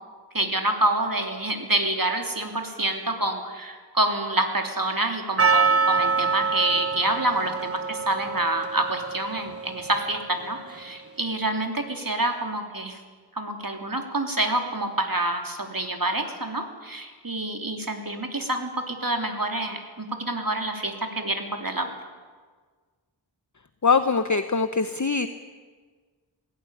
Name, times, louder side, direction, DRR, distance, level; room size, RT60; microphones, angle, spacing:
voice 1, 0.3-13.0 13.4-21.9, right 2 dB, 45° right, 4 dB, 3.1 m, -27 dB
Percussion, 5.4-10.3, right 5 dB, 30° right, 1.1 m, -25 dB
voice 2, 23.8-25.3, left 4 dB, 40° left, 10 dB, 0.9 m, -22 dB
20.0 x 17.5 x 10.0 m, 1.5 s
wide cardioid pair, 40°, 45 cm